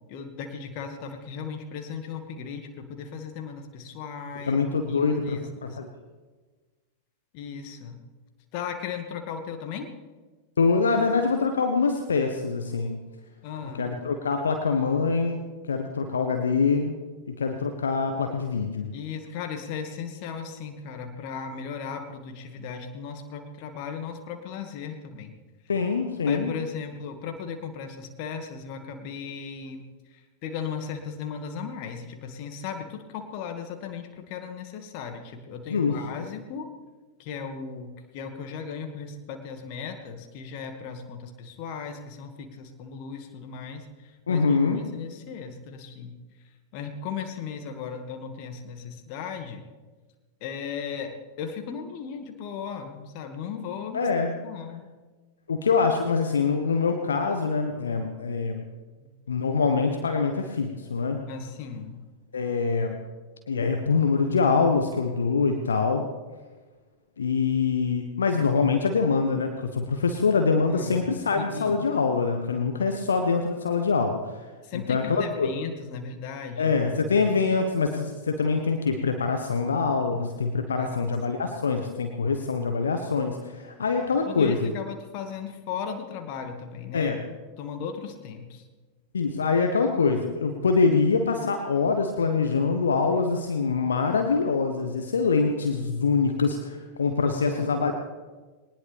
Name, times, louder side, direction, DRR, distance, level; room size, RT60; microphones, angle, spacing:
voice 1, 0.1-5.8 7.3-8.0 8.5-9.9 13.4-13.9 18.9-25.3 26.3-36.7 37.2-46.1 46.7-49.6 50.4-54.1 54.4-54.9 59.0-59.2 61.3-62.1 70.7-71.0 71.3-71.8 74.6-76.7 80.8-81.2 84.3-87.2 87.6-88.6 97.2-97.8, left 6 dB, 45° left, 6 dB, 2.0 m, -37 dB
voice 2, 4.5-5.9 10.6-13.0 13.6-16.9 17.3-18.9 25.7-26.5 35.7-36.3 44.3-44.8 53.9-54.3 55.5-58.6 59.3-61.2 62.3-63.0 63.5-66.1 67.2-74.3 74.7-75.5 76.6-84.7 86.9-87.2 89.1-97.9, left 4 dB, 70° left, 5 dB, 1.2 m, -24 dB
21.0 x 19.0 x 3.5 m, 1.3 s
figure-of-eight pair, 90°, 0 cm